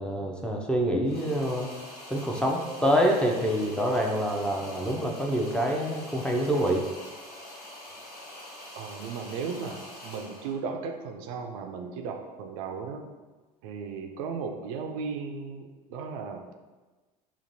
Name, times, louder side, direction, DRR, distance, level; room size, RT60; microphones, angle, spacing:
voice 1, 0.0-1.7 2.1-6.8, equal, 5° left, 0 dB, 0.5 m, -26 dB
sound 1, 1.0-10.6, left 1 dB, 65° left, 1.2 m, -45 dB
voice 2, 8.8-13.0 13.6-16.5, right 5 dB, 55° right, 4 dB, 0.4 m, -36 dB
5.1 x 2.5 x 2.6 m, 1.3 s
figure-of-eight pair, 70°, 21 cm